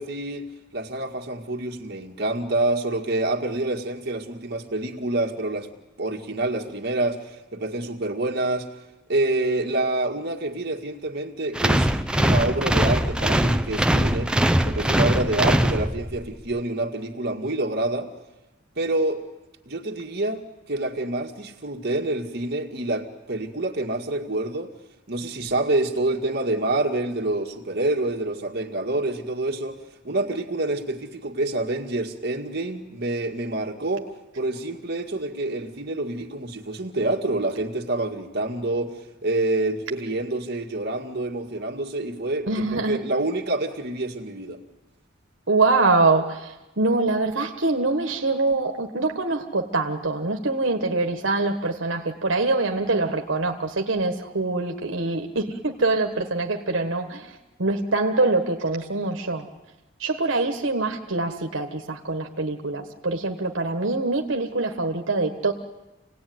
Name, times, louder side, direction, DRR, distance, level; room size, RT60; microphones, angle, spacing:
voice 1, 0.0-5.7 6.0-8.7 9.1-11.9 12.2-14.3 14.6-18.1 18.8-19.2 19.7-24.7 25.1-29.8 30.0-44.6, right 2 dB, 60° right, 1 dB, 2.0 m, -27 dB
sound 1, 11.6-16.3, right 1 dB, 5° right, 0.8 m, -21 dB
voice 2, 42.5-43.0 45.5-57.3 57.6-59.5 60.0-65.5, right 3 dB, 90° right, 4 dB, 1.5 m, -24 dB
27.0 x 18.0 x 9.5 m, 1.1 s
head